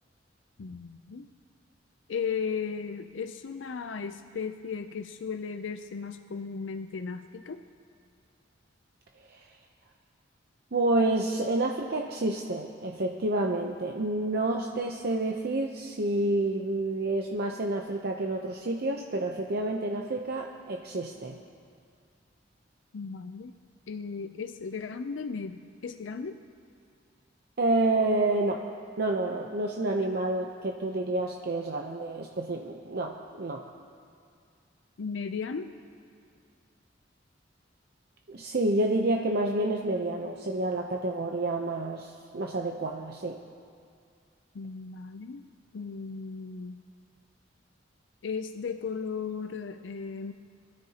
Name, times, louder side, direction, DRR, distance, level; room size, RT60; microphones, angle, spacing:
voice 1, 0.6-1.3 2.1-7.6 22.9-23.5 23.9-26.4 35.0-35.7 44.5-46.8 48.2-50.3, left 5 dB, 80° left, 8 dB, 0.5 m, -36 dB
voice 2, 10.7-21.4 27.6-28.6 29.0-33.6 38.3-43.4, right 2 dB, 55° right, 2 dB, 0.7 m, -29 dB
24.5 x 13.0 x 2.9 m, 2.3 s
head